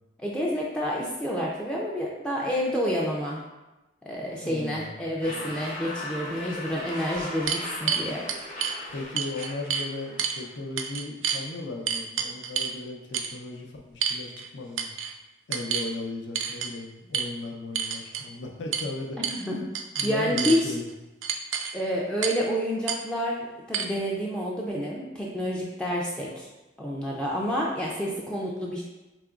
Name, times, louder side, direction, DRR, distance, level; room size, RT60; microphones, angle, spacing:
voice 1, 0.2-3.4 4.1-8.2 19.2-19.7 20.0-20.7 21.7-23.4 23.7-26.5 26.8-28.8, equal, 5° left, -4 dB, 0.4 m, -29 dB
voice 2, 4.4-5.5 8.9-14.9 15.5-19.2 20.0-20.9, left 2 dB, 75° left, 1 dB, 0.6 m, -36 dB
sound 1, 5.2-10.5, left 1 dB, 40° left, 0.7 m, -38 dB
sound 2, 6.2-6.3 6.9-8.8 9.2-9.9 10.2-10.4 10.8-11.4 11.9-12.8 13.1-13.3 14.0-14.5 14.8-15.1 15.5-15.9 16.3-16.7 17.1-17.3 17.7-18.3 18.7-18.9 19.2-19.5 19.7-20.6 21.2-21.7 22.2-22.4 22.9-23.0 23.7-23.8, right 7 dB, 85° right, 0.4 m, -29 dB
4.8 x 2.9 x 2.4 m, 1.0 s
head